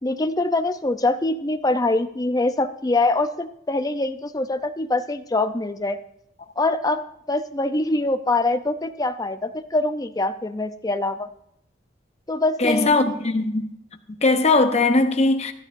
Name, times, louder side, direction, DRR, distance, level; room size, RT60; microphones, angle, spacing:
voice 1, 0.0-6.0 6.6-11.3 12.3-13.2, left 2 dB, 20° left, 0.6 m, -24 dB
voice 2, 12.6-13.7 14.2-15.5, left 2 dB, 35° left, 0.9 m, -19 dB
14.5 x 12.5 x 2.6 m
head